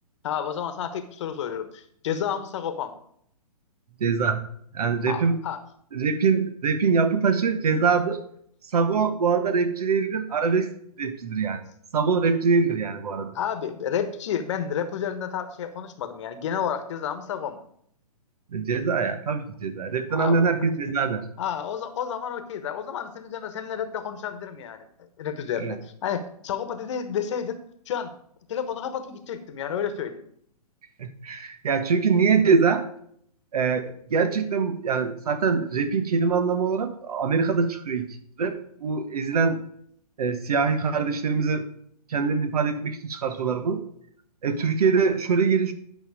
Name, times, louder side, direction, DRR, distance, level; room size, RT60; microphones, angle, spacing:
voice 1, 0.2-3.0 5.1-5.6 13.3-17.6 20.1-20.4 21.4-24.9 25.2-28.1 28.5-30.2, left 8 dB, 50° left, 9 dB, 1.2 m, -31 dB
voice 2, 4.0-4.4 4.7-5.4 5.9-8.2 8.7-11.6 11.9-13.3 18.5-21.2 25.6-25.8 31.0-32.9 33.5-39.6 40.2-41.7 42.1-43.8 44.4-45.7, right 5 dB, 70° right, 10 dB, 1.4 m, -24 dB
11.0 x 5.7 x 4.9 m, 0.66 s
hypercardioid pair, 145°, 20 cm